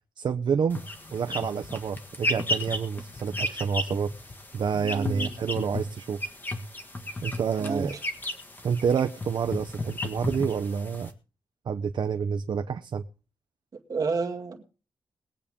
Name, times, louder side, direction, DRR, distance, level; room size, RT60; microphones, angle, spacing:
voice 1, 0.2-0.8 1.1-4.1 4.5-6.2 7.2-7.9 8.6-11.1 11.7-13.0, right 6 dB, 65° right, 6 dB, 0.7 m, -28 dB
sound 1, 0.7-11.1, left 1 dB, 25° left, 1.6 m, -34 dB
voice 2, 4.7-5.4 7.6-7.9 13.9-14.6, right 4 dB, 45° right, 1 dB, 2.1 m, -30 dB
21.5 x 8.5 x 3.6 m, 0.35 s
wide cardioid pair, 155°, 8 cm